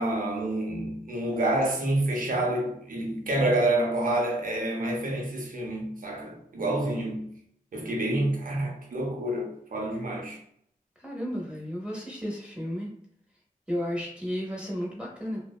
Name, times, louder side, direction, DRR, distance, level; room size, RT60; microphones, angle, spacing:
voice 1, 0.0-7.2 7.7-10.4, right 1 dB, 70° right, 0.6 m, -28 dB
voice 2, 11.0-12.9 13.7-15.4, equal, 5° right, 0.7 m, -33 dB
2.7 x 2.0 x 2.3 m
wide cardioid pair, 80°, 15 cm